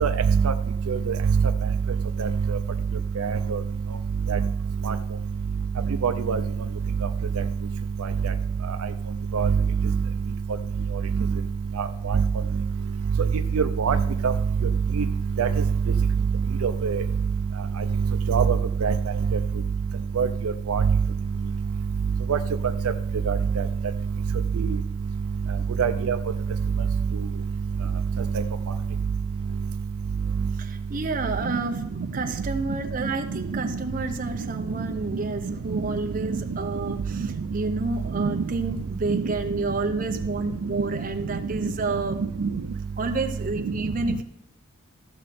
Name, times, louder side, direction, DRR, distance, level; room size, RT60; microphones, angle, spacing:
voice 1, 3.2-3.6 4.3-4.4 4.9-5.0 6.0-6.4 9.3-9.5 12.1-12.2 13.5-14.0 14.2-14.3 15.0-15.1 15.4-15.5 16.6-17.0 18.3-18.6 18.8-18.9 20.2-20.3 20.7-20.8 22.3-22.4 23.3-23.6 25.8-26.2 38.2-38.3, right 6 dB, 90° right, 8 dB, 0.5 m, -23 dB
voice 2, 30.5-42.2 43.0-44.2, right 3 dB, 40° right, 5 dB, 0.8 m, -30 dB
14.0 x 6.4 x 4.2 m, 0.81 s
head